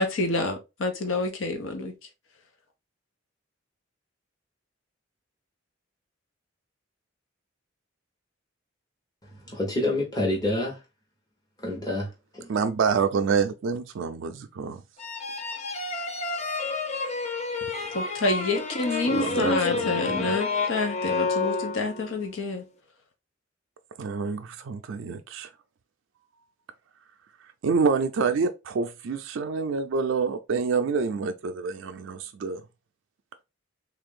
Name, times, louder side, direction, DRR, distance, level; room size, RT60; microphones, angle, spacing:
voice 1, 0.0-1.9 17.9-22.6, left 2 dB, 80° left, 0.7 m, -28 dB
voice 2, 9.3-10.8 11.6-12.5, left 1 dB, 20° left, 0.9 m, -28 dB
voice 3, 12.5-14.8 17.8-17.9 19.1-20.3 24.0-25.5 27.6-32.6, right 5 dB, 70° right, 0.4 m, -27 dB
sound 1, 15.0-22.2, left 4 dB, 35° left, 0.6 m, -29 dB
3.4 x 2.5 x 3.6 m
head